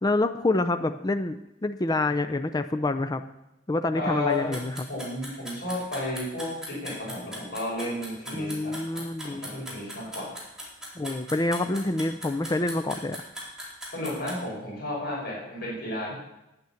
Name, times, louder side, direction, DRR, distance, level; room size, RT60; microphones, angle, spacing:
voice 1, 0.0-3.2 3.7-4.9 8.3-9.5 11.0-13.2, left 2 dB, 20° left, 8 dB, 0.5 m, -27 dB
voice 2, 3.9-4.5 4.9-8.8 9.2-10.3 13.9-16.1, left 1 dB, 55° left, -5 dB, 5.7 m, -32 dB
sound 1, 4.3-14.4, equal, 5° right, 4.1 m, -39 dB
10.5 x 9.3 x 7.1 m, 0.91 s
head